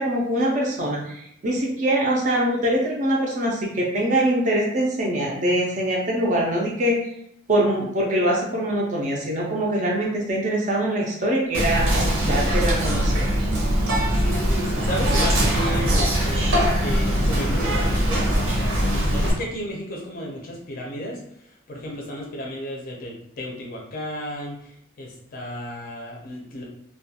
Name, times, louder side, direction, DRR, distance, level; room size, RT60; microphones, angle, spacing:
voice 1, 0.0-7.1 7.5-13.2, right 1 dB, 35° right, -2 dB, 0.4 m, -23 dB
Whispering, 11.5-19.3, equal, 85° right, 0.7 m, -21 dB
voice 2, 14.1-16.5 16.8-21.2 21.7-24.6 25.0-26.6, equal, 45° left, -1 dB, 0.4 m, -33 dB
2.3 x 2.1 x 2.7 m, 0.75 s
head